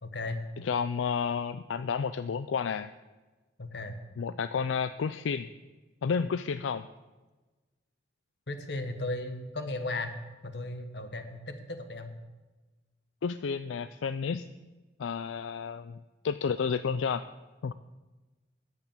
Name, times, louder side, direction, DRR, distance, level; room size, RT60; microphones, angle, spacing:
voice 1, 0.0-0.4 3.6-4.0 8.5-10.1 10.4-12.1, left 2 dB, 60° left, 8 dB, 1.2 m, -36 dB
voice 2, 0.6-2.9 4.2-5.5 6.0-6.9 13.2-14.4 15.0-16.0 16.2-17.2 17.6-17.7, left 6 dB, 85° left, 12 dB, 0.4 m, -31 dB
10.5 x 8.2 x 7.2 m, 1.2 s
head